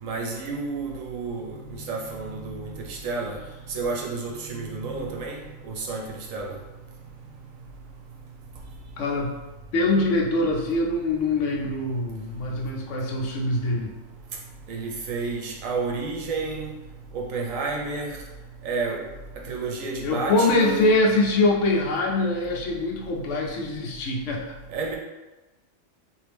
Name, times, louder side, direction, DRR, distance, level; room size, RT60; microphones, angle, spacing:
voice 1, 0.0-3.4 3.7-5.4 5.6-6.0 6.3-6.5 14.7-16.7 17.1-18.2 18.6-19.0 19.5-20.9 24.7-25.0, right 4 dB, 80° right, 0 dB, 1.1 m, -30 dB
voice 2, 9.0-9.3 9.7-13.9 20.0-24.6, left 2 dB, 70° left, 0 dB, 0.9 m, -23 dB
3.6 x 2.6 x 3.4 m, 1.1 s
omnidirectional pair, 1.4 m